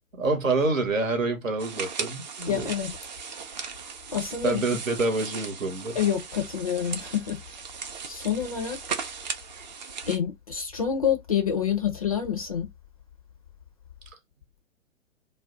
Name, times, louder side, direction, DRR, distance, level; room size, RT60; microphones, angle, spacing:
voice 1, 0.2-2.7 4.4-6.0, right 3 dB, 80° right, 1.0 m, -27 dB
sound 1, 1.6-10.2, right 6 dB, 35° right, 0.4 m, -37 dB
voice 2, 2.5-2.9 4.1-4.6 6.0-7.4 8.1-8.8 10.1-12.7, left 8 dB, 30° left, 0.4 m, -27 dB
2.3 x 2.1 x 3.6 m
figure-of-eight pair, 120°, 39 cm